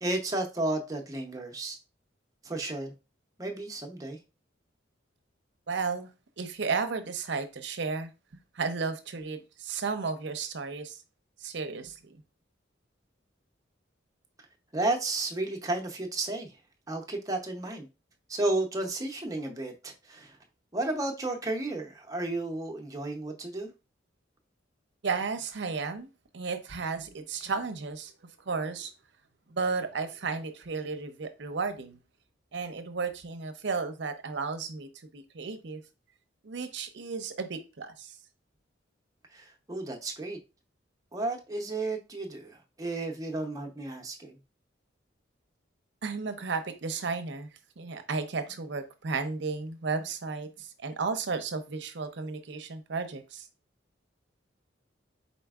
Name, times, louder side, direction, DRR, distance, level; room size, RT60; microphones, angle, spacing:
voice 1, 0.0-1.8 2.4-2.9 3.4-4.2 14.7-16.6 16.9-17.9 18.3-20.4 20.7-23.7 39.3-40.4 41.1-44.4, right 2 dB, 20° right, 0.6 m, -33 dB
voice 2, 5.7-6.1 6.4-11.0 11.4-12.2 25.0-26.1 26.3-28.1 28.5-28.9 29.5-32.0 32.5-35.8 36.4-38.1 46.0-47.5 47.8-53.5, right 4 dB, 65° right, 0.6 m, -33 dB
4.4 x 4.1 x 2.3 m
head